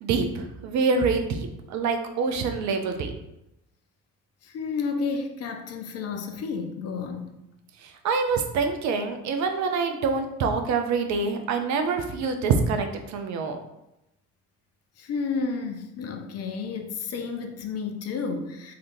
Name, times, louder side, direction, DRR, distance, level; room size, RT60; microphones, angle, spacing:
voice 1, 0.0-3.1 7.8-13.6, right 4 dB, 35° right, 5 dB, 0.6 m, -26 dB
voice 2, 4.4-7.3 15.0-18.7, left 5 dB, 35° left, 5 dB, 0.6 m, -31 dB
3.7 x 3.3 x 2.6 m, 0.86 s
figure-of-eight pair, 50°, 48 cm